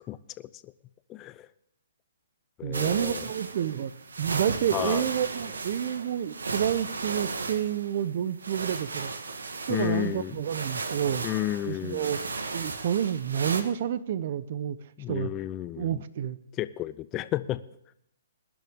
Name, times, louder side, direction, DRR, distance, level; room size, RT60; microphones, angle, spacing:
voice 1, 0.1-0.7 1.1-1.5 2.6-3.2 4.7-5.1 9.7-10.4 11.2-12.1 15.0-16.0 16.6-17.6, left 14 dB, 25° left, 15 dB, 0.6 m, -32 dB
voice 2, 2.6-9.1 9.7-11.2 11.6-12.2 12.5-14.8 15.1-15.3 15.8-16.4, right 9 dB, 50° right, 16 dB, 0.9 m, -29 dB
sound 1, 2.7-13.6, right 4 dB, 90° right, 1.5 m, -35 dB
20.5 x 10.5 x 3.7 m, 0.77 s
hypercardioid pair, 145°, 0 cm